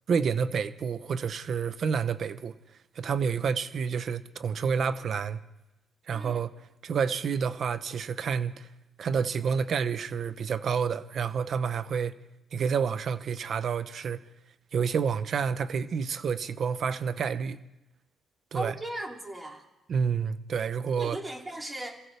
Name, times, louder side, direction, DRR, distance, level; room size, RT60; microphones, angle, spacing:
voice 1, 0.1-2.6 3.0-5.4 6.1-6.5 6.8-8.7 9.0-12.1 12.5-14.2 14.7-17.6 18.5-18.7 19.9-21.2, right 6 dB, 55° right, 0.8 m, -29 dB
voice 2, 6.1-6.4 18.5-19.6 21.0-22.0, right 1 dB, 20° right, 2.9 m, -37 dB
26.5 x 15.5 x 3.4 m
cardioid pair, 90°, 0 cm